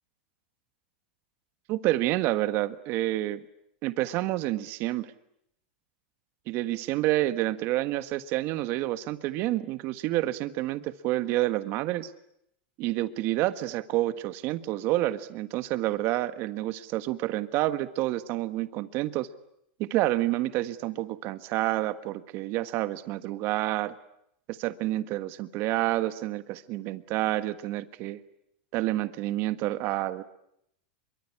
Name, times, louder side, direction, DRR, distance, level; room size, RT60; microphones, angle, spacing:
voice 1, 1.7-3.4 3.8-5.1 6.5-12.1 12.8-19.3 19.8-23.9 24.5-28.2 28.7-30.2, right 16 dB, 40° right, 11 dB, 1.5 m, -29 dB
24.5 x 23.0 x 9.9 m, 0.75 s
supercardioid pair, 145°, 6 cm